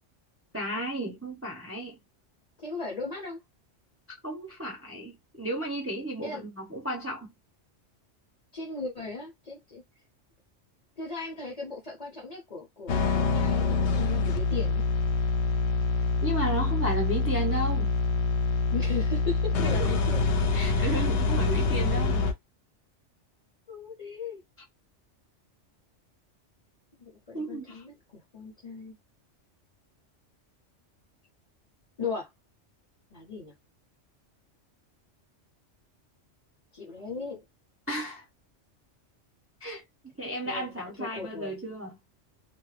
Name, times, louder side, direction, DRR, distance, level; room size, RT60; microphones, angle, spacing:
voice 1, 0.5-2.0 4.2-7.3 16.2-17.9 19.5-20.0 20.5-22.3 27.3-27.8 37.9-38.2 39.6-42.0, right 1 dB, 15° right, 0.5 m, -33 dB
voice 2, 2.6-3.4 6.2-6.4 8.5-9.8 11.0-14.8 18.7-20.3 20.7-21.1 23.7-24.4 27.0-29.0 32.0-32.3 33.1-33.5 36.7-37.4 40.4-41.6, left 4 dB, 40° left, 0.7 m, -37 dB
sound 1, 12.9-22.3, left 4 dB, 75° left, 0.8 m, -25 dB
2.2 x 2.0 x 3.2 m
omnidirectional pair, 1.2 m